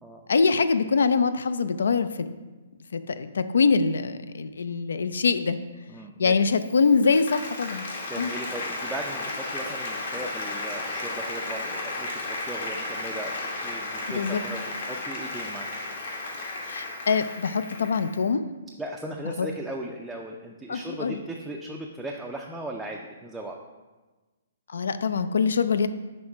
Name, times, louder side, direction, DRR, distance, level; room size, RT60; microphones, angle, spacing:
voice 1, 0.3-2.3 2.9-5.6 6.2-7.9 8.2-8.3 14.1-14.4 16.7-18.4 19.4-19.5 20.7-21.2 24.7-25.9, left 5 dB, 80° left, 12 dB, 0.3 m, -24 dB
voice 2, 5.9-6.4 8.1-15.7 18.8-23.6, right 1 dB, 5° right, -2 dB, 0.4 m, -37 dB
Applause, 6.6-18.2, left 2 dB, 60° left, 1.2 m, -34 dB
6.1 x 3.1 x 4.9 m, 1.2 s
hypercardioid pair, 155°, 0 cm